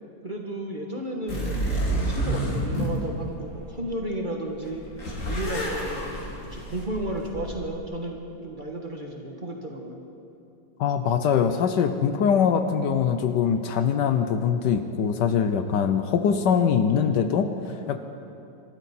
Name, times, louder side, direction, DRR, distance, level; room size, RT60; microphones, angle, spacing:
voice 1, 0.2-4.8 5.3-6.2 6.5-10.0, right 1 dB, 30° right, 0 dB, 1.2 m, -33 dB
sound 1, 1.3-4.0 4.5-7.8, right 1 dB, 40° left, 2.8 m, -29 dB
voice 2, 10.8-18.0, left 7 dB, 70° left, 8 dB, 1.3 m, -23 dB
24.5 x 12.5 x 4.3 m, 2.7 s
omnidirectional pair, 2.1 m